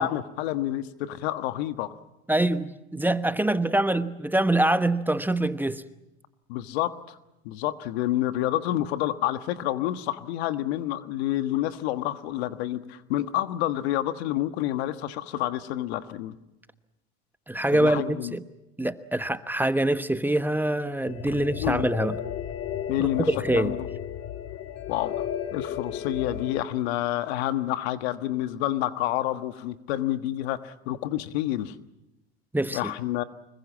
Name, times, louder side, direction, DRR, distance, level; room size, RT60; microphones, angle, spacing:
voice 1, 0.0-1.9 6.5-7.2 7.4-16.3 17.7-18.3 21.6-21.9 22.9-23.9 24.9-25.2 25.5-31.7 32.7-33.2, left 13 dB, 75° left, 1.5 m, -28 dB
voice 2, 2.3-5.8 17.5-18.4 18.8-22.2 23.2-23.7 32.5-32.8, right 1 dB, 5° right, 1.1 m, -24 dB
sound 1, 21.0-26.6, left 9 dB, 55° left, 2.3 m, -34 dB
25.5 x 21.5 x 7.3 m
hypercardioid pair, 90°, 32 cm